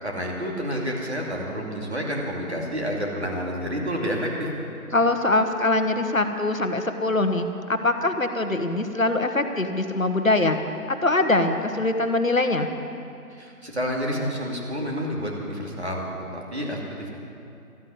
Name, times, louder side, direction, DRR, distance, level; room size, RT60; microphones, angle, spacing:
voice 1, 0.0-4.5 13.3-16.1 16.3-17.1, equal, 45° right, -1 dB, 2.7 m, -29 dB
voice 2, 4.9-10.6 11.0-12.7, left 2 dB, 60° left, 7 dB, 1.2 m, -23 dB
13.5 x 9.1 x 9.7 m, 2.6 s
figure-of-eight pair, 165°, 45 cm